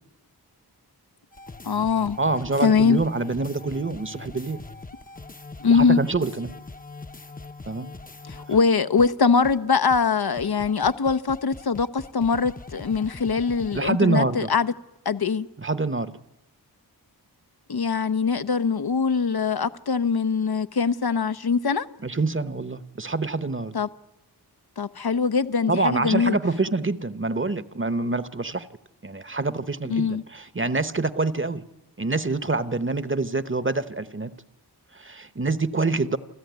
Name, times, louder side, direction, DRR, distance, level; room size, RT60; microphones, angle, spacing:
sound 1, 1.3-8.7 9.0-9.1 9.4-9.6 9.9-10.0 10.4-13.9, left 3 dB, 20° left, 0.8 m, -42 dB
voice 1, 1.6-2.2 2.6-3.0 5.6-6.0 8.3-14.7 15.1-15.5 17.7-21.9 23.7-23.9 24.8-26.4 29.9-30.2, left 5 dB, 70° left, 0.8 m, -22 dB
voice 2, 2.2-4.6 5.7-6.5 7.7-7.9 8.5-8.6 13.7-14.5 15.6-16.1 22.0-23.7 25.7-28.7 29.0-31.6 32.0-34.3 34.9-36.2, right 3 dB, 30° right, 1.0 m, -26 dB
28.0 x 14.0 x 9.4 m
wide cardioid pair, 65°, 39 cm